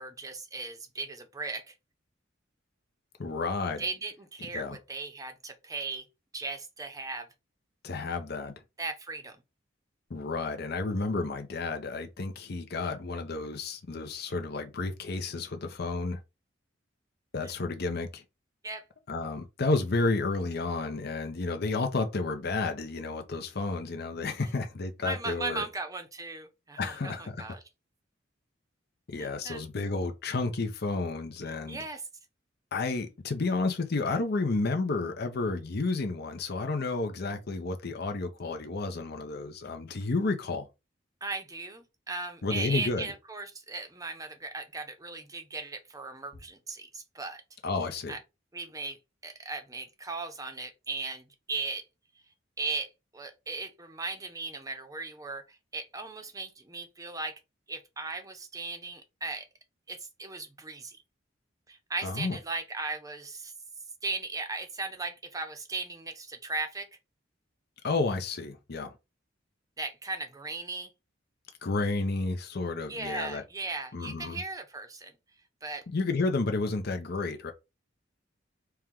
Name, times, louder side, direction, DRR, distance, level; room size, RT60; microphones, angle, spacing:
voice 1, 0.0-1.7 3.8-6.1 6.3-7.3 8.8-9.4 17.4-17.5 18.6-18.8 25.0-27.6 29.2-29.6 31.5-32.0 41.2-47.4 48.1-48.2 48.5-49.0 49.2-51.8 52.6-57.3 57.7-59.5 59.9-61.0 61.7-63.5 64.0-66.9 69.8-70.9 72.9-75.1 75.6-75.8, right 3 dB, 20° right, 0.7 m, -37 dB
voice 2, 3.2-3.8 4.5-4.8 7.8-8.5 10.1-16.2 17.3-18.2 19.1-25.6 26.8-27.5 29.1-31.8 32.7-40.7 42.4-43.0 47.6-48.1 62.0-62.4 67.8-68.9 71.6-73.4 73.9-74.4 75.9-77.5, left 3 dB, 55° left, 0.7 m, -31 dB
4.5 x 2.3 x 3.6 m
head